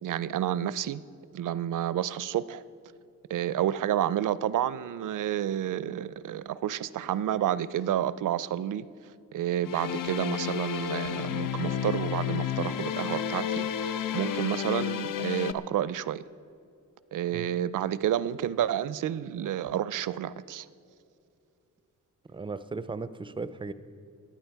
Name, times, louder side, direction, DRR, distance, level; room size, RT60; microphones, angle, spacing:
voice 1, 0.0-1.0 1.3-2.6 3.3-8.9 9.3-16.2 17.1-20.7, right 11 dB, 70° right, 17 dB, 0.5 m, -30 dB
sound 1, 9.6-15.5, left 9 dB, 80° left, 0.6 m, -31 dB
voice 2, 22.3-23.7, right 3 dB, 15° right, 13 dB, 0.4 m, -36 dB
19.0 x 11.0 x 4.6 m, 2.6 s
wide cardioid pair, 145°, 32 cm